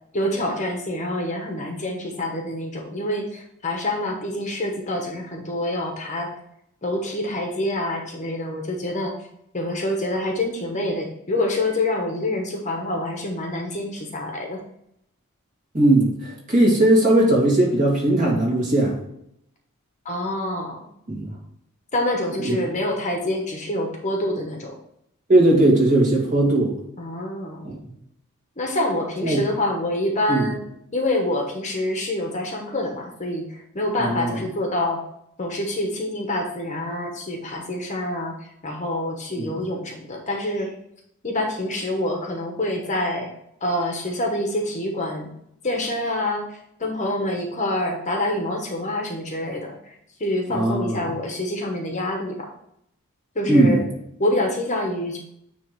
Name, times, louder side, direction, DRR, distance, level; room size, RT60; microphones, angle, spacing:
voice 1, 0.1-6.3 6.8-9.2 9.5-14.6 20.0-20.9 21.9-24.8 27.0-27.8 28.6-30.6 30.9-35.0 35.4-40.7 41.2-43.3 43.6-45.3 45.6-49.9 50.2-52.5 53.3-53.8 54.2-55.2, left 1 dB, 35° left, 2 dB, 1.1 m, -26 dB
voice 2, 15.7-19.0 21.1-21.3 22.4-22.6 25.3-26.7 27.6-27.8 29.2-29.4 30.3-30.5 34.0-34.4 39.4-39.6 50.5-51.0 53.4-53.8, right 1 dB, 35° right, -3 dB, 2.5 m, -18 dB
9.5 x 3.2 x 4.6 m, 0.75 s
head